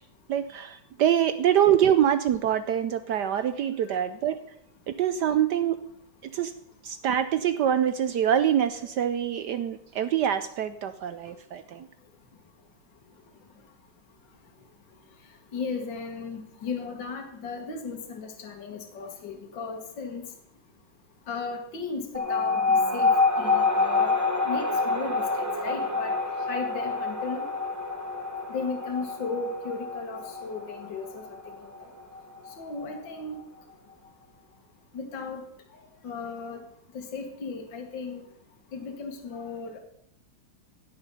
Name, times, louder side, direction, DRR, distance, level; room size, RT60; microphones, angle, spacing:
voice 1, 0.3-4.4 4.9-5.8 6.3-6.5 6.8-11.9, right 10 dB, 70° right, 11 dB, 1.0 m, -25 dB
voice 2, 15.5-20.2 21.3-24.1 24.4-26.1 26.5-27.4 28.5-31.7 32.6-33.4 34.9-35.4 36.0-36.6 36.9-38.2 38.7-39.8, left 4 dB, 60° left, 3 dB, 2.4 m, -35 dB
sound 1, 22.1-33.1, left 3 dB, 15° right, 0.7 m, -27 dB
17.0 x 7.9 x 5.5 m, 0.71 s
omnidirectional pair, 2.3 m